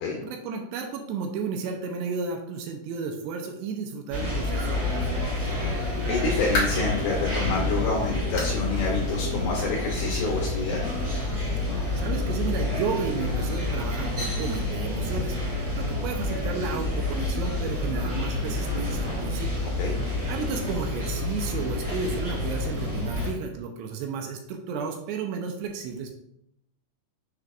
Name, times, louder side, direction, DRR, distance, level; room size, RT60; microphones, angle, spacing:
voice 1, 0.2-5.5 12.0-19.6 20.3-26.2, right 5 dB, 80° right, 2 dB, 2.5 m, -33 dB
sound 1, 4.1-23.3, left 2 dB, 45° right, 1.3 m, -28 dB
voice 2, 6.1-10.8 19.8-19.9, left 3 dB, 75° left, -2 dB, 2.8 m, -28 dB
Light switch being turned on and off, 6.5-7.0 7.5-7.6 8.4-8.6 9.0-9.1 9.6-9.7 10.7-10.8, left 1 dB, 60° left, 1.5 m, -31 dB
7.3 x 6.2 x 2.5 m, 0.79 s
omnidirectional pair, 5.5 m